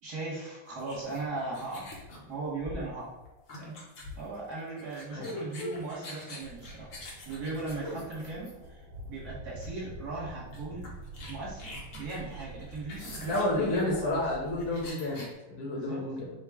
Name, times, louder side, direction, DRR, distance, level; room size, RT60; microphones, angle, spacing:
voice 1, 0.0-1.9 2.3-3.1 3.6-3.8 4.2-6.9 7.3-10.9 11.3-14.2 15.7-16.0, right 3 dB, 50° right, -5 dB, 1.5 m, -38 dB
sound 1, 0.8-8.8 9.6-9.8 10.1-10.2 10.5-15.3, left 1 dB, 60° left, 0.8 m, -44 dB
sound 2, 6.4-14.9, right 2 dB, 80° right, 1.4 m, -46 dB
voice 2, 13.2-16.3, left 2 dB, 75° left, -3 dB, 1.7 m, -31 dB
4.7 x 2.3 x 3.5 m, 1.1 s
omnidirectional pair, 2.4 m